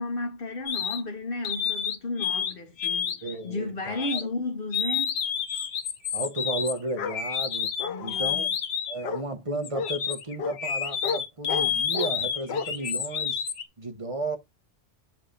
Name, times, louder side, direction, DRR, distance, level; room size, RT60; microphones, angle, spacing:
voice 1, 0.0-3.2 3.4-5.1 7.8-8.5, left 2 dB, 50° left, 1.3 m, -33 dB
sound 1, 0.7-1.0 1.4-2.5 2.8-3.3 4.0-4.2 4.7-9.0 9.6-13.6, left 7 dB, 85° left, 1.2 m, -29 dB
voice 2, 3.2-4.2 6.1-7.7 8.0-8.5 8.9-13.4 13.8-14.4, right 2 dB, 30° right, 0.8 m, -33 dB
Bark, 7.0-7.2 7.8-8.4 9.0-9.2 9.7-9.9 10.4-10.6 11.0-11.2 11.5-12.1 12.5-12.7, left 6 dB, 65° left, 0.9 m, -31 dB
6.7 x 2.9 x 5.1 m
omnidirectional pair, 1.2 m